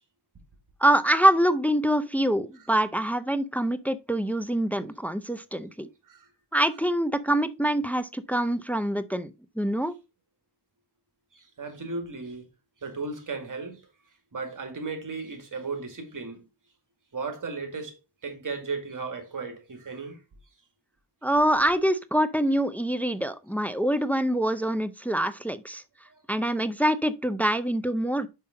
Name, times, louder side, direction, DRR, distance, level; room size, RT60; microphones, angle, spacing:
voice 1, 0.8-5.9 6.5-9.9 21.2-25.8 26.3-28.3, right 1 dB, 5° left, 0.5 m, -25 dB
voice 2, 11.3-12.4 12.8-13.8 14.3-16.5 17.1-17.9 18.2-20.2 26.1-26.2, right 4 dB, 50° right, 2.1 m, -35 dB
5.5 x 5.4 x 3.6 m
wide cardioid pair, 85°, 40 cm